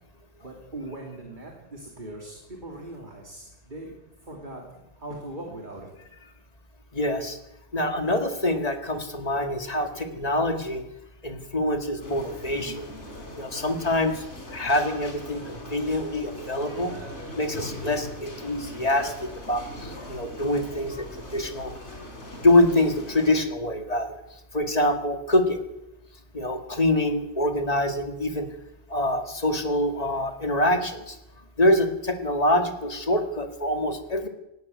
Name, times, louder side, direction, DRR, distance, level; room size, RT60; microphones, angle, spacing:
voice 1, 0.4-2.4 2.6-3.9 4.3-4.6 5.0-5.9, right 1 dB, 40° right, 0 dB, 3.1 m, -39 dB
voice 2, 6.9-7.4 7.7-10.8 11.2-12.9 13.4-14.2 14.5-16.9 17.3-21.7 22.4-24.2 24.5-25.6 26.3-28.5 28.9-31.2 31.6-34.3, left 1 dB, 35° left, 5 dB, 2.0 m, -25 dB
sound 1, 12.0-23.4, left 1 dB, 75° left, 4.5 m, -40 dB
17.5 x 16.0 x 9.5 m, 0.93 s
omnidirectional pair, 1.2 m